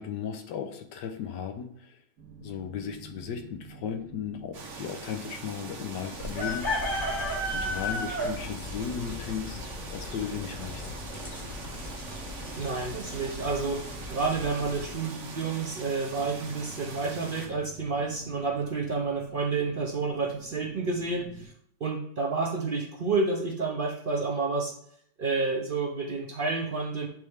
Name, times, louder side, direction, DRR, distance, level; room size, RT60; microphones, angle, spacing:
voice 1, 0.0-2.0 2.4-7.0 7.5-9.6 9.9-10.9, left 7 dB, 80° left, 5 dB, 1.4 m, -36 dB
sound 1, 2.2-21.5, right 4 dB, 70° right, 1.5 m, -49 dB
sound 2, 4.5-17.5, right 4 dB, 85° right, 1.7 m, -43 dB
sound 3, 6.2-14.9, left 1 dB, 35° left, 1.2 m, -35 dB
voice 2, 12.6-21.5 21.8-24.7 25.2-27.1, right 4 dB, 45° right, 1 dB, 0.7 m, -30 dB
9.0 x 3.3 x 3.5 m, 0.65 s
omnidirectional pair, 1.8 m